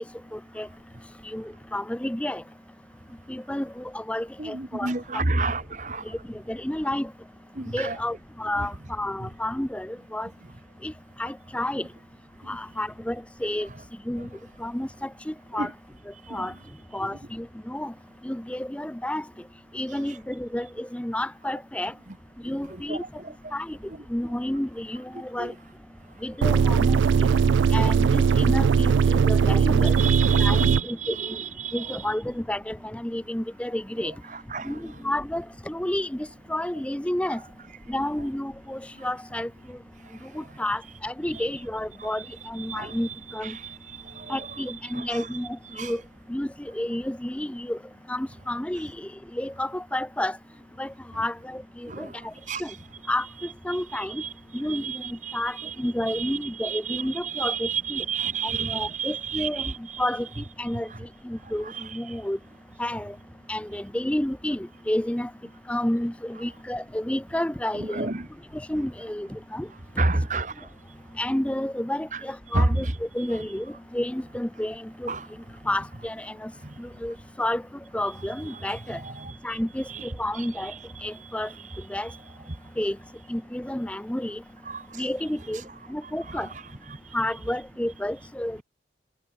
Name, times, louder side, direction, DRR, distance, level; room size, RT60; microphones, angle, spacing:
voice 1, 0.3-0.7 1.2-2.4 3.3-5.2 6.1-6.2 6.5-7.1 7.7-10.3 10.8-10.9 11.2-11.9 12.5-13.7 14.1-14.3 14.6-15.7 16.3-16.5 16.9-17.9 18.2-19.2 19.7-21.9 22.4-23.0 23.5-23.8 24.1-25.5 26.2-27.3 27.7-30.0 30.4-31.4 31.7-34.1 34.6-37.4 37.9-39.5 40.3-43.6 44.3-46.0 46.3-47.8 48.1-50.4 50.8-52.3 52.6-52.7 53.1-53.3 53.6-54.2 54.5-58.0 58.4-59.7 60.0-60.3 60.6-60.9 61.2-62.4 62.8-63.2 63.5-65.3 65.7-68.1 68.5-69.7 71.2-75.1 75.7-76.5 76.8-77.6 77.9-79.0 79.4-80.7 81.0-81.5 81.9-82.1 82.8-83.0 83.3-84.4 85.0-85.6 85.9-86.5 87.1-88.6, left 1 dB, 5° left, 0.5 m, -30 dB
voice 2, 4.4-6.0 7.5-8.0 8.6-8.7 9.2-9.3 14.2-14.3 15.5-15.7 16.3-16.5 17.0-17.1 22.1-22.2 22.5-23.3 23.9-24.0 25.4-25.5 30.0-32.1 34.3-34.8 41.3-41.4 42.0-42.3 42.6-43.8 44.1-45.4 45.7-46.0 51.1-51.2 51.9-52.1 52.5-52.8 53.7-54.3 54.7-60.1 60.9-61.0 61.6-62.0 67.7-68.3 70.0-70.5 72.1-72.2 72.5-73.5 75.1-75.3 78.4-79.3 79.8-80.8 81.7-81.8 84.6-84.8 85.5-85.6 86.0-87.0, right 4 dB, 40° right, 1.5 m, -32 dB
sound 1, 26.4-30.8, right 6 dB, 85° right, 0.3 m, -19 dB
head